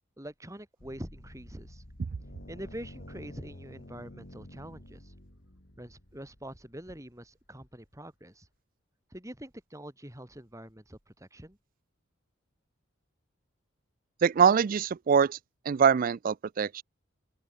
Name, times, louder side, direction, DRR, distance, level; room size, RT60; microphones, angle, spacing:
voice 1, 0.2-1.8 2.5-5.1 5.8-8.5 9.1-11.6, right 1 dB, 15° right, 3.7 m, -45 dB
sound 1, 0.8-7.3, left 1 dB, 55° left, 3.9 m, -50 dB
voice 2, 14.2-15.4 15.7-16.8, right 7 dB, 45° right, 0.3 m, -23 dB
head